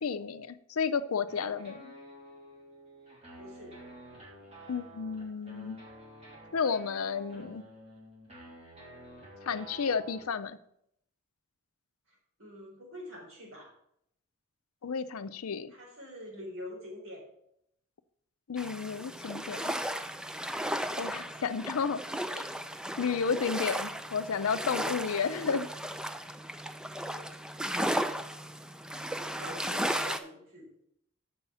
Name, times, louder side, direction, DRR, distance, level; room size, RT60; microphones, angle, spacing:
voice 1, 0.0-1.9 4.7-5.8 6.5-7.6 9.5-10.6 14.8-15.7 18.5-19.7 21.0-22.0 22.3-22.4 23.0-25.7, left 6 dB, 85° left, 13 dB, 0.5 m, -32 dB
sound 1, 1.3-10.4, right 1 dB, 30° right, 3.0 m, -50 dB
voice 2, 3.4-3.7 12.1-13.7 15.7-17.2 27.1-27.3 27.6-27.9 28.9-30.7, left 1 dB, 65° right, -2 dB, 3.9 m, -46 dB
sound 2, 18.6-30.2, equal, 5° right, 0.4 m, -35 dB
7.0 x 5.6 x 7.1 m, 0.74 s
head